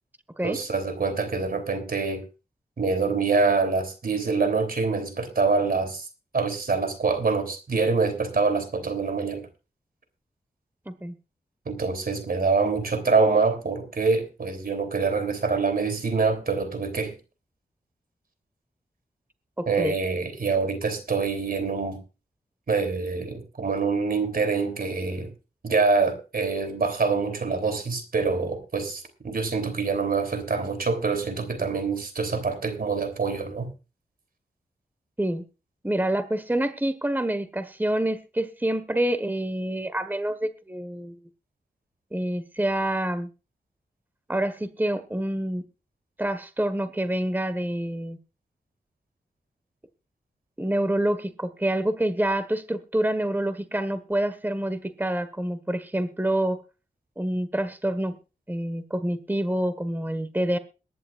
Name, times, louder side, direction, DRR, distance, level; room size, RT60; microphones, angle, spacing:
voice 1, 0.4-2.2 2.8-6.1 6.3-9.5 11.6-17.1 19.7-22.0 22.7-25.3 25.6-33.7, right 4 dB, 65° right, 3.4 m, -25 dB
voice 2, 19.6-19.9 35.2-35.4 35.8-41.1 42.1-43.3 44.3-45.6 46.2-48.2 50.6-56.6 57.2-58.2 58.5-60.6, right 1 dB, 10° right, 1.5 m, -27 dB
22.5 x 11.0 x 2.5 m
cardioid pair, 55°, 16 cm